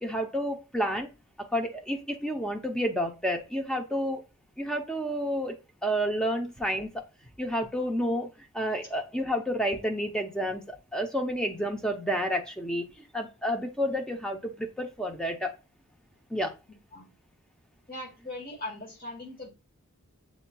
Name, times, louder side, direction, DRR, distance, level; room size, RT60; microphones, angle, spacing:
voice 1, 0.0-1.1 1.4-4.2 4.6-5.6 5.8-7.0 7.4-15.5 16.3-16.5, equal, 5° left, 0.6 m, -30 dB
voice 2, 17.9-19.5, left 2 dB, 40° left, 1.7 m, -39 dB
7.2 x 2.8 x 2.2 m
head